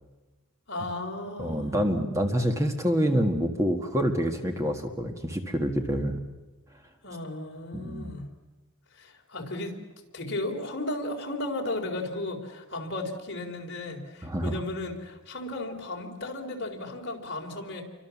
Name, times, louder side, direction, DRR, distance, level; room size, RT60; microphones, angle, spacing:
voice 1, 0.7-1.8 7.0-8.3 8.9-9.8 10.1-17.8, left 2 dB, 50° left, 1 dB, 4.1 m, -35 dB
voice 2, 1.4-6.2 7.7-8.1 14.2-14.5, equal, 15° right, 4 dB, 1.6 m, -27 dB
29.5 x 24.5 x 7.3 m, 1.2 s
head